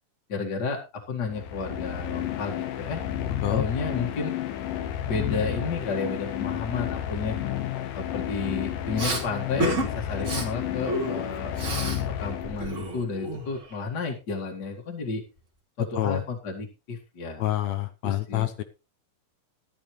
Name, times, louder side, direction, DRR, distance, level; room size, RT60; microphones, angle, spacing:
voice 1, 0.3-3.0 3.5-4.4 5.0-7.4 7.9-11.6 12.1-15.2 15.8-17.4 18.0-18.5, left 4 dB, 35° left, 0 dB, 2.1 m, -32 dB
sound 1, 1.2-13.0, left 11 dB, 85° left, 2.8 m, -31 dB
Respiratory sounds, 9.0-9.2 9.6-9.9 10.2-10.5 10.9-12.0 12.3-13.7, right 2 dB, 25° right, 2.3 m, -30 dB
voice 2, 17.4-18.6, left 13 dB, 70° left, 11 dB, 1.8 m, -27 dB
12.5 x 12.0 x 3.2 m, 0.28 s
omnidirectional pair, 3.7 m